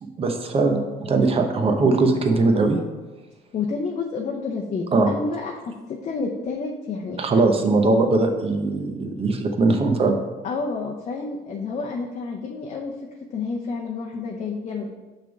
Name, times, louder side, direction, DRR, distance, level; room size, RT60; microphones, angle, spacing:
voice 1, 0.0-2.8 4.9-5.1 7.2-10.2, right 3 dB, 35° right, 4 dB, 0.9 m, -20 dB
voice 2, 3.5-7.2 10.4-12.9 13.3-14.9, left 4 dB, 40° left, 0 dB, 0.7 m, -29 dB
5.9 x 3.5 x 5.9 m, 1.2 s
cardioid pair, 110°, 17 cm